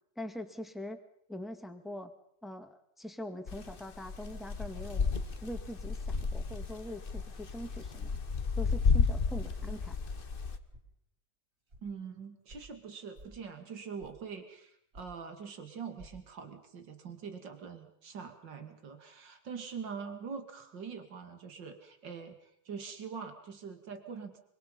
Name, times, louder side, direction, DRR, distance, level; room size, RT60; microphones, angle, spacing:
voice 1, 0.2-1.0 1.3-2.1 2.4-5.1 5.4-8.2 8.6-10.0, equal, ahead, 6 dB, 1.9 m, -43 dB
sound 1, 3.5-10.6, left 5 dB, 35° left, 1.2 m, -32 dB
sound 2, 5.5-5.8 6.5-6.7 7.6-7.8 8.7-8.8 9.6-9.8 10.7-10.9 11.7-11.8 12.5-12.7 13.1-13.4 14.0-14.3 14.9-15.2 16.0-16.1, right 1 dB, 45° right, 5.5 m, -52 dB
voice 2, 11.8-24.4, right 6 dB, 80° right, 7 dB, 3.0 m, -44 dB
25.5 x 25.5 x 5.5 m, 0.69 s
omnidirectional pair, 1.9 m